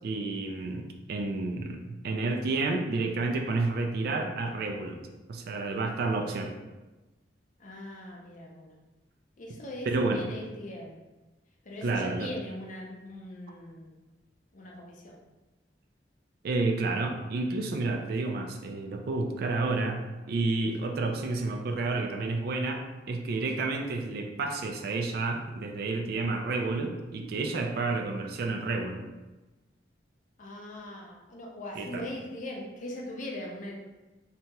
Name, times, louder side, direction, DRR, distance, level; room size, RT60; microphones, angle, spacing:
voice 1, 0.0-5.0 5.3-6.5 9.9-10.2 11.8-12.3 16.4-29.1 31.8-32.0, right 3 dB, 55° right, 3 dB, 0.3 m, -30 dB
voice 2, 7.6-8.8 9.4-9.9 10.1-11.0 11.6-14.0 14.5-15.2 30.4-33.7, left 1 dB, 45° left, -1 dB, 0.5 m, -41 dB
2.9 x 2.8 x 2.2 m, 1.1 s
head